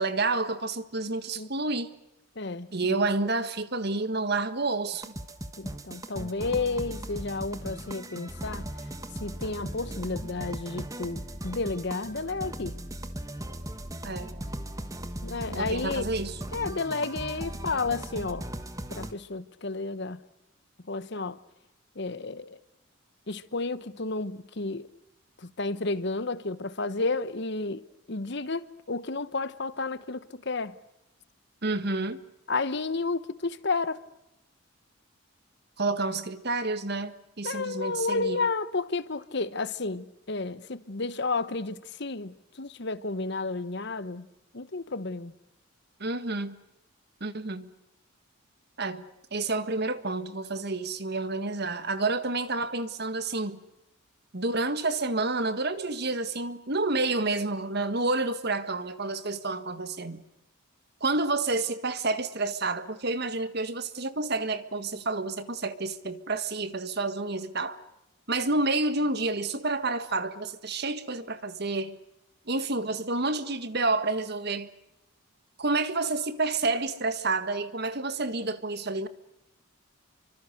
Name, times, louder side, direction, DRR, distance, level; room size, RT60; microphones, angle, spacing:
voice 1, 0.0-1.9 2.7-5.1 14.0-14.3 15.5-16.4 31.6-32.2 35.8-38.4 46.0-46.6 47.2-47.7 48.8-49.0 49.3-53.6 54.3-60.2 61.0-67.8 68.3-72.0 72.5-74.7 75.6-79.1, right 3 dB, 50° right, 1.6 m, -29 dB
voice 2, 2.4-2.7 5.6-8.7 9.2-12.8 15.2-16.1 16.5-18.5 18.9-20.2 20.8-21.4 21.9-22.6 23.3-24.9 25.4-27.8 28.1-30.8 32.5-34.0 37.4-44.3 44.5-45.3, left 3 dB, 55° left, 1.1 m, -31 dB
sound 1, 4.9-19.1, right 1 dB, 15° right, 1.4 m, -38 dB
29.0 x 25.0 x 6.7 m
head